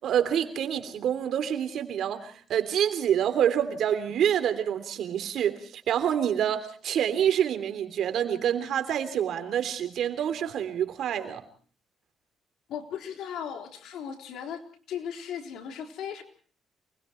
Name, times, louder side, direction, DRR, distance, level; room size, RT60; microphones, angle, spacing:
voice 1, 0.0-11.4, right 9 dB, 70° right, 3.3 m, -27 dB
voice 2, 12.7-14.6 14.9-16.2, left 8 dB, 80° left, 3.8 m, -36 dB
28.5 x 21.0 x 4.6 m
cardioid pair, 90°, 0 cm